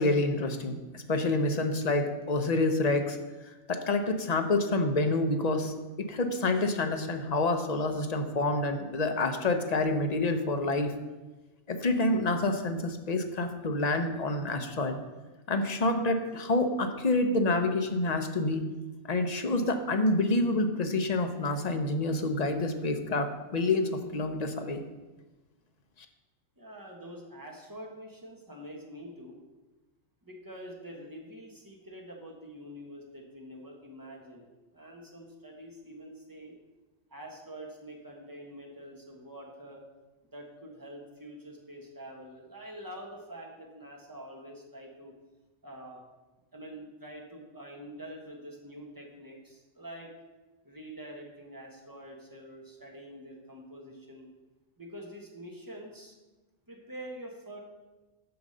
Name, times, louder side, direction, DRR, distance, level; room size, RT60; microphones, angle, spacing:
voice 1, 0.0-3.2 3.5-10.9 11.7-15.0 15.5-18.6 19.0-24.8, left 2 dB, 40° left, 6 dB, 0.7 m, -28 dB
voice 2, 26.6-29.4 30.2-34.5 34.7-36.5 37.1-39.8 40.3-45.1 45.6-46.0 46.5-50.1 50.6-54.3 54.8-56.1 56.7-57.6, equal, 15° right, -1 dB, 1.4 m, -46 dB
7.0 x 5.1 x 6.6 m, 1.2 s
omnidirectional pair, 1.2 m